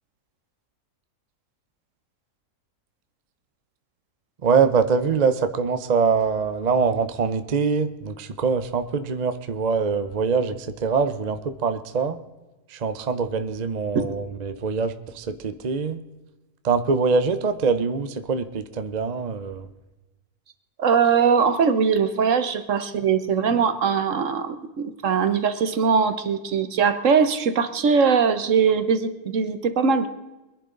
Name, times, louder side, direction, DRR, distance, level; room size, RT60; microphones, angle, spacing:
voice 1, 4.4-12.2 12.7-16.0 16.6-19.7, right 5 dB, 40° right, 10 dB, 0.6 m, -24 dB
voice 2, 20.8-30.1, right 6 dB, 55° right, 10 dB, 1.3 m, -21 dB
23.0 x 11.0 x 3.9 m, 1.1 s
omnidirectional pair, 1.7 m